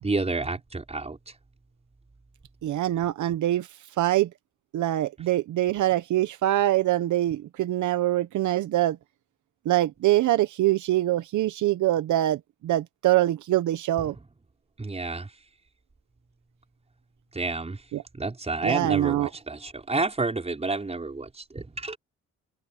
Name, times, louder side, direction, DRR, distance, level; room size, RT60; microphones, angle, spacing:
voice 1, 0.0-1.2 14.8-15.3 17.3-17.8 18.2-22.0, right 3 dB, 20° right, 5.4 m, -29 dB
voice 2, 2.6-3.7 4.0-4.3 4.7-9.0 9.6-14.1 17.9-18.0 18.6-19.3, right 14 dB, 75° right, 1.1 m, -24 dB
cardioid pair, 90°, 30 cm